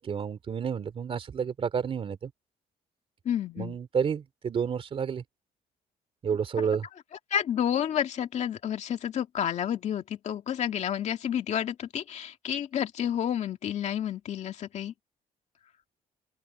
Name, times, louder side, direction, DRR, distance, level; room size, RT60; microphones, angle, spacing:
voice 1, 0.0-2.3 3.6-5.2 6.2-6.8, right 7 dB, 40° right, 3.0 m, -30 dB
voice 2, 3.2-3.8 7.3-14.9, left 9 dB, 50° left, 2.3 m, -30 dB
open air
cardioid pair, 165°, 15 cm